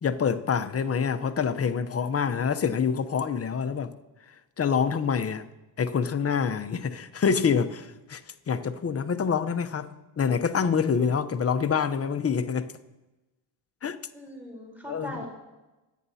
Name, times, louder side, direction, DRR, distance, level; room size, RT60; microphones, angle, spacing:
voice 1, 0.0-3.9 4.6-5.4 5.8-8.2 8.5-12.7 13.8-14.0 14.9-15.2, left 6 dB, 30° left, 0.8 m, -26 dB
voice 2, 14.1-15.3, left 1 dB, 5° right, 3.9 m, -39 dB
24.5 x 9.3 x 2.8 m
cardioid pair, 95°, 46 cm